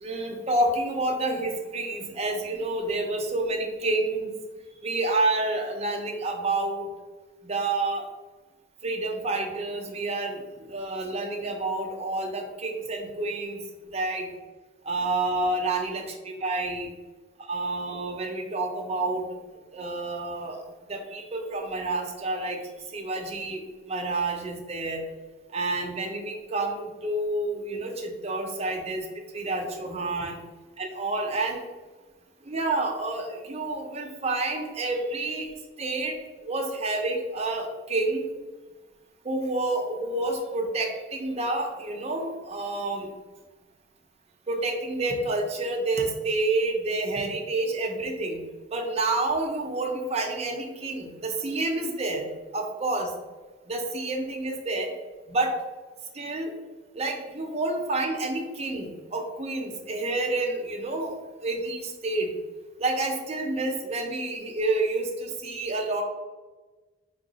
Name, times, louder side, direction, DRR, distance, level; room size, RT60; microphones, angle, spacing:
voice 1, 0.0-4.3 4.8-6.9 7.4-8.1 8.8-13.6 13.9-14.2 14.8-16.1 16.4-16.9 17.5-19.3 19.7-20.6 20.9-22.6 22.9-23.6 23.9-25.0 25.5-29.0 29.3-30.4 30.8-31.6 32.5-35.5 35.8-36.1 36.4-38.3 39.2-43.1 44.5-48.4 48.7-52.2 52.5-53.1 53.7-54.9 55.3-55.5 56.1-56.5 56.9-61.1 61.4-62.3 62.8-66.0, right 2 dB, 35° right, 2 dB, 0.6 m, -29 dB
3.6 x 2.3 x 4.0 m, 1.2 s
head